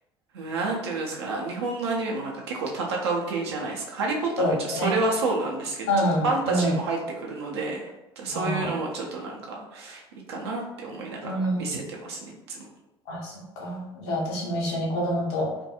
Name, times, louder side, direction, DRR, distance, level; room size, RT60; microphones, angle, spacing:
voice 1, 0.3-5.9 6.2-10.0 10.3-12.2 12.5-12.7, right 3 dB, 75° right, -1 dB, 0.6 m, -29 dB
voice 2, 4.4-4.9 5.9-6.7 8.3-8.7 11.2-11.8 13.1-15.5, equal, 70° left, -3 dB, 0.8 m, -27 dB
2.5 x 2.3 x 2.7 m, 0.97 s
figure-of-eight pair, 60°, 14 cm